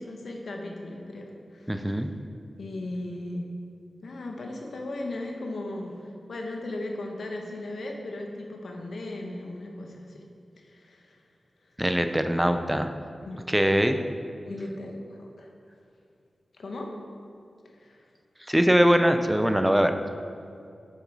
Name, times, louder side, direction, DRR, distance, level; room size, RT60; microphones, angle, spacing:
voice 1, 0.0-2.1 2.6-3.5 4.0-10.2 10.6-11.2 13.2-13.6 14.4-15.5 16.6-16.9 17.6-18.1, left 2 dB, 75° left, 2 dB, 1.1 m, -37 dB
voice 2, 1.7-2.1 11.8-12.9 13.5-14.0 18.5-19.9, equal, 5° right, 7 dB, 0.5 m, -22 dB
7.7 x 7.1 x 4.7 m, 2.5 s
wide cardioid pair, 90°, 0 cm